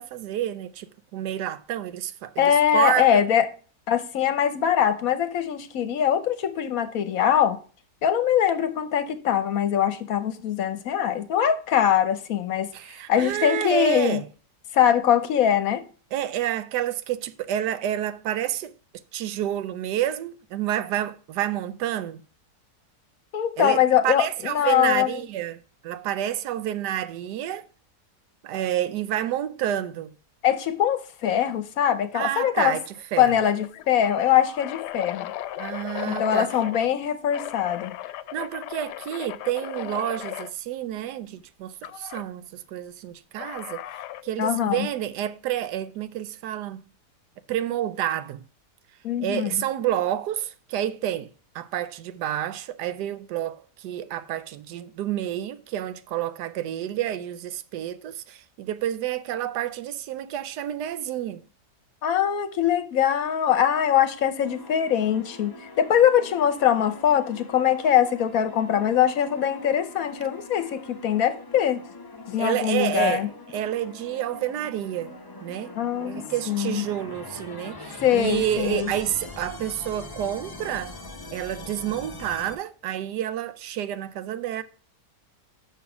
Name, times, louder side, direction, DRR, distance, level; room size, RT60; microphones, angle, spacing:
voice 1, 0.0-3.2 12.7-14.3 16.1-18.7 19.1-22.2 23.6-27.6 28.4-30.1 32.1-33.3 35.6-36.5 38.3-43.8 44.2-46.8 47.5-48.4 49.2-61.4 72.4-75.1 75.4-80.9 81.3-84.6, right 11 dB, 85° right, 1.2 m, -29 dB
voice 2, 2.4-3.5 3.9-7.6 8.0-12.7 13.1-14.2 14.7-15.8 23.3-25.2 30.4-32.8 33.2-35.3 36.0-37.9 44.4-44.9 49.0-49.6 62.0-71.8 72.3-73.3 75.8-76.8 78.0-78.9, left 10 dB, 65° left, 1.1 m, -22 dB
sound 1, 32.4-32.6 32.9-33.0 33.6-36.9 37.3-40.5 41.8-42.2 43.4-44.3, left 13 dB, 85° left, 1.2 m, -36 dB
sound 2, 64.4-82.5, left 2 dB, 30° left, 0.4 m, -42 dB
6.3 x 5.7 x 5.7 m
omnidirectional pair, 1.7 m